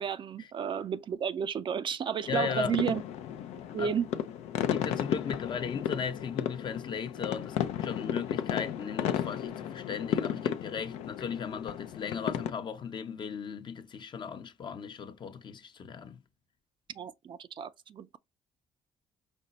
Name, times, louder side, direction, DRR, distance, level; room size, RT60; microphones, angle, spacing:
voice 1, 0.0-3.0 3.7-4.1 17.0-18.2, right 7 dB, 50° right, 0.4 m, -32 dB
sound 1, 2.3-12.5, left 10 dB, 80° left, 0.5 m, -34 dB
voice 2, 2.3-2.8 3.8-3.9 4.7-16.2, left 6 dB, 45° left, 0.7 m, -37 dB
5.2 x 2.2 x 4.0 m
supercardioid pair, 70°, 11 cm